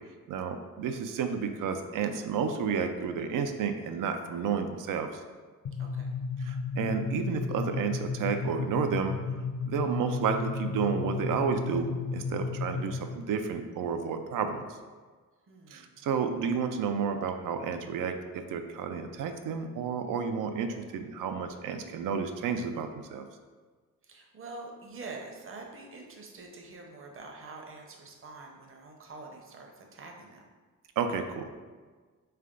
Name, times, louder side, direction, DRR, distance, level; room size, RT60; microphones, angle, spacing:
voice 1, 0.3-5.2 6.4-9.1 9.6-14.6 15.7-23.3 31.0-31.5, right 6 dB, 75° right, 7 dB, 0.5 m, -31 dB
sound 1, 5.7-13.2, left 5 dB, 50° left, 0.5 m, -34 dB
voice 2, 5.8-6.2 9.8-10.1 15.5-16.0 24.0-30.4, right 3 dB, 40° right, 1 dB, 0.8 m, -46 dB
3.4 x 3.3 x 3.7 m, 1.4 s
cardioid pair, 90°, 33 cm